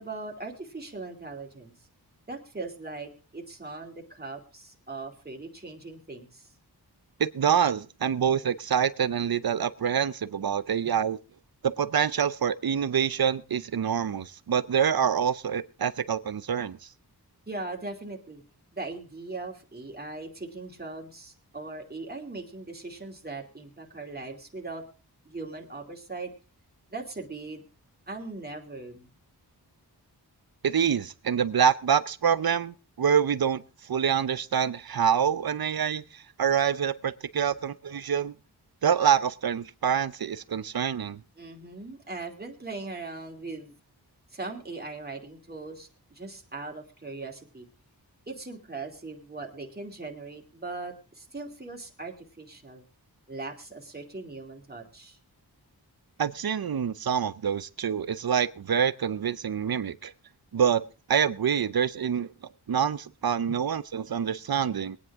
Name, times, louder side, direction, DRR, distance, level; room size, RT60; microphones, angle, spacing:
voice 1, 0.0-1.7 2.3-6.5 17.5-18.4 18.7-24.8 25.2-26.3 26.9-27.6 28.1-29.1 41.4-43.8 44.3-47.7 48.3-52.8 53.3-55.2, right 3 dB, 25° right, 1 dB, 2.7 m, -39 dB
voice 2, 7.2-11.2 11.6-16.8 30.6-38.3 38.8-41.2 56.2-60.1 60.5-60.8 61.1-62.3 62.7-65.0, right 8 dB, 65° right, 16 dB, 0.7 m, -26 dB
22.5 x 9.6 x 3.6 m, 0.33 s
wide cardioid pair, 75°, 40 cm